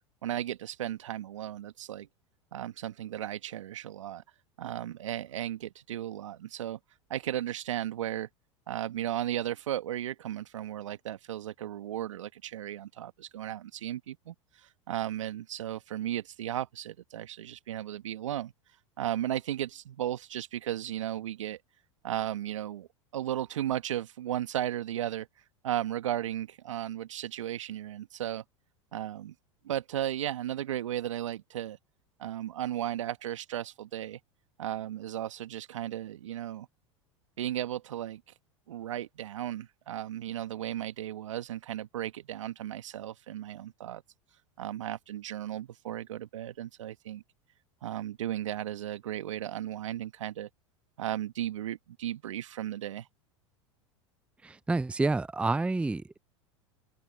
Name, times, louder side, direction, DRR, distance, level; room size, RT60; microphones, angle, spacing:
voice 1, 0.2-2.1 2.5-4.2 4.6-6.8 7.1-8.3 8.7-14.3 14.6-18.5 19.0-21.6 22.0-22.9 23.1-25.3 25.6-28.4 28.9-29.3 29.6-31.8 32.2-34.2 34.6-36.7 37.4-38.2 38.7-44.0 44.6-47.2 47.8-50.5 51.0-53.1, right 12 dB, 75° right, 1.6 m, -35 dB
voice 2, 54.4-56.2, right 3 dB, 5° right, 0.5 m, -29 dB
open air
hypercardioid pair, 85°, 16 cm